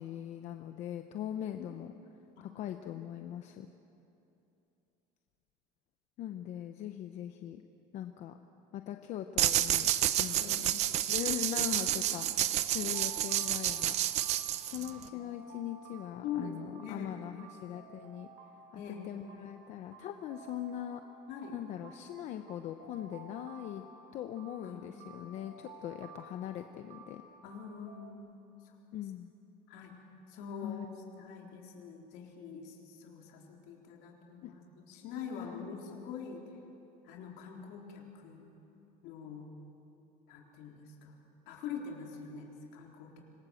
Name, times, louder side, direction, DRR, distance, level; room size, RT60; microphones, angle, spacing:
voice 1, 0.0-1.9 2.4-3.7 6.2-7.6 7.9-8.4 8.7-9.9 10.2-10.8 11.1-14.0 14.6-18.3 18.7-21.0 21.5-23.8 24.1-27.2 28.9-29.3 30.6-30.9 34.4-34.5 35.4-35.6, left 11 dB, 45° left, 7 dB, 0.8 m, -41 dB
sound 1, 9.4-15.1, right 12 dB, 40° right, 0.8 m, -30 dB
voice 2, 10.4-10.7 12.1-12.2 14.7-14.8 15.1-15.3 16.2-17.2 18.7-19.3 21.3-21.6 24.6-24.8 27.4-28.4 29.7-29.9 30.3-36.5 37.0-38.5 39.0-39.5 40.3-41.2 41.5-43.2, left 6 dB, 65° left, 0 dB, 3.9 m, -44 dB
sound 2, 10.9-28.1, right 3 dB, 65° right, 3.1 m, -55 dB
26.0 x 20.0 x 7.7 m, 2.9 s
cardioid pair, 170°, 17 cm